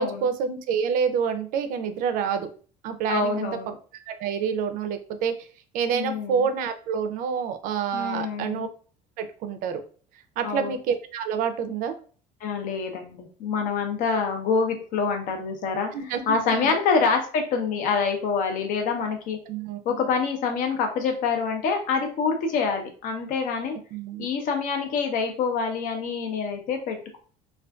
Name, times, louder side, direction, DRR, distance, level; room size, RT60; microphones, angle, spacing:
voice 1, 0.0-2.5 2.8-3.5 4.1-5.5 5.7-8.7 9.2-9.8 10.4-11.9 15.9-16.2 16.5-16.7 19.5-20.0 23.9-24.3, right 7 dB, 60° right, 9 dB, 0.4 m, -27 dB
voice 2, 3.1-3.8 5.9-6.4 7.9-8.7 10.4-10.7 12.4-15.9 16.3-19.4 19.8-23.8 24.2-27.2, left 5 dB, 60° left, 4 dB, 0.6 m, -26 dB
2.4 x 2.3 x 2.2 m, 0.41 s
cardioid pair, 115°, 15 cm